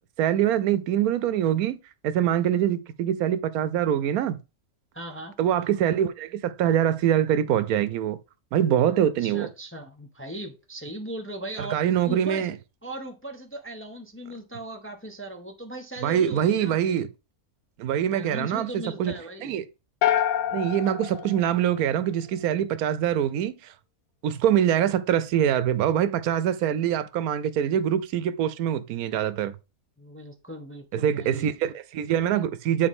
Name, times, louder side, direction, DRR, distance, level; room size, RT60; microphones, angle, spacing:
voice 1, 0.2-1.8 2.0-4.4 5.4-8.2 8.5-9.5 11.6-12.6 16.0-17.1 17.8-19.1 19.4-19.7 20.5-23.7 24.2-29.5 30.9-32.9, right 10 dB, 85° right, 1.1 m, -24 dB
voice 2, 4.9-5.3 9.2-11.8 12.1-12.5 12.8-17.0 18.1-19.5 30.0-31.5, right 1 dB, 10° left, 0.6 m, -38 dB
sound 1, 20.0-22.3, left 11 dB, 75° left, 1.0 m, -27 dB
8.7 x 4.4 x 3.5 m
omnidirectional pair, 1.5 m